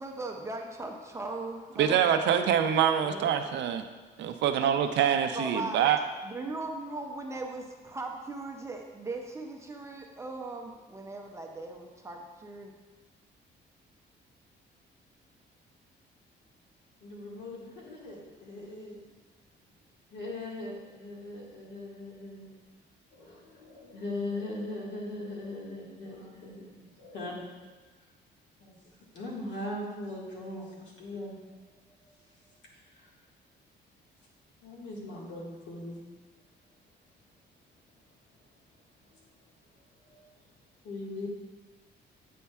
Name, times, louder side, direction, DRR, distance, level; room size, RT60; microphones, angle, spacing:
voice 1, 0.0-2.0 2.9-3.3 5.3-5.8 6.2-12.7, right 2 dB, 15° right, 1 dB, 0.4 m, -38 dB
voice 2, 1.8-3.8 4.2-6.0, right 9 dB, 70° right, 8 dB, 0.5 m, -25 dB
voice 3, 17.0-19.0 20.1-22.5 23.1-27.5 28.6-31.4 32.0-33.1 34.6-36.0 39.0-39.3 39.9-40.5 40.8-41.3, left 2 dB, 75° left, -4 dB, 1.7 m, -40 dB
8.2 x 5.4 x 2.3 m, 1.3 s
cardioid pair, 175°, 19 cm